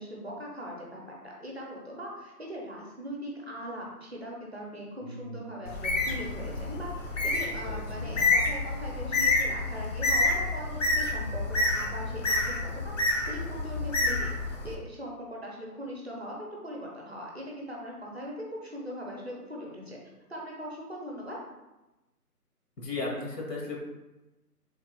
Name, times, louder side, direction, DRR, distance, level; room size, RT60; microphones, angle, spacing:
voice 1, 0.0-14.3 14.6-20.0 20.3-21.4, equal, 45° right, -2 dB, 0.4 m, -40 dB
voice 2, 5.0-5.6 7.5-8.2 22.8-23.8, left 2 dB, 90° left, -1 dB, 1.2 m, -37 dB
Bird, 5.7-14.7, left 2 dB, 55° left, 0.5 m, -28 dB
3.2 x 2.0 x 2.9 m, 1.0 s
hypercardioid pair, 165°, 47 cm